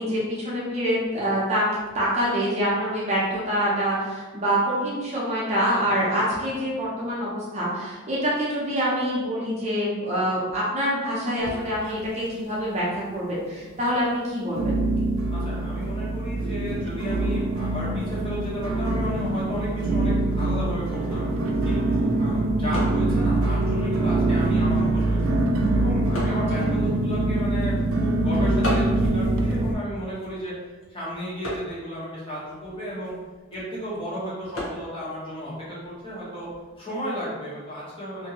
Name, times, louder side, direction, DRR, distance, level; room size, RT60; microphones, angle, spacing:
voice 1, 0.0-1.7 1.9-14.8 26.3-26.4, equal, 35° right, -6 dB, 0.7 m, -26 dB
sound 1, 11.4-12.3 12.6-13.2 13.7-13.8 14.6-29.7, right 2 dB, 75° right, 0.4 m, -24 dB
voice 2, 15.3-21.3 21.6-25.2 25.7-30.5 30.9-33.1 33.5-36.5 36.8-38.3, equal, 25° left, -8 dB, 1.0 m, -34 dB
sound 2, 21.2-36.7, left 1 dB, 70° left, 0.9 m, -40 dB
2.8 x 2.6 x 2.8 m, 1.3 s
head